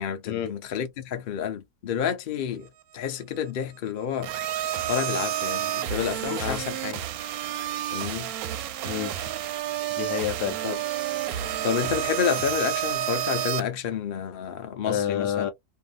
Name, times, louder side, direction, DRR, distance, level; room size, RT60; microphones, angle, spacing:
voice 1, 0.0-2.7 2.9-4.3 4.9-7.0 7.9-8.3 10.6-10.8 11.6-15.5, left 8 dB, 70° left, 0.5 m, -29 dB
sound 1, 4.2-13.6, right 12 dB, 70° right, 0.9 m, -30 dB
voice 2, 8.8-9.2 10.0-10.6 14.9-15.5, left 10 dB, 85° left, 1.2 m, -28 dB
2.7 x 2.4 x 2.3 m
omnidirectional pair, 1.7 m